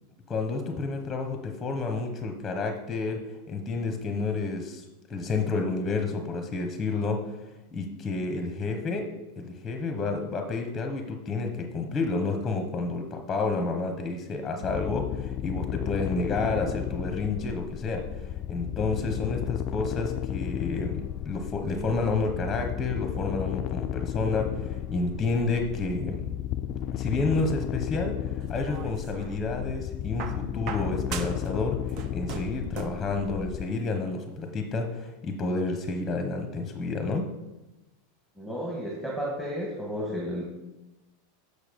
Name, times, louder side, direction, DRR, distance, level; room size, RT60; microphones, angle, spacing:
voice 1, 0.3-4.8 5.1-7.2 7.7-9.1 9.4-18.1 18.5-26.3 26.9-37.3, left 3 dB, 15° left, 4 dB, 0.9 m, -30 dB
sound 1, 14.6-33.7, left 11 dB, 45° left, 0.4 m, -33 dB
sound 2, 28.4-29.4 30.2-31.5 31.8-33.1 34.1-34.2, right 6 dB, 45° right, 0.8 m, -39 dB
voice 2, 38.4-40.5, equal, 5° right, -4 dB, 1.6 m, -32 dB
7.2 x 6.6 x 5.2 m, 1.0 s
supercardioid pair, 140°, 0 cm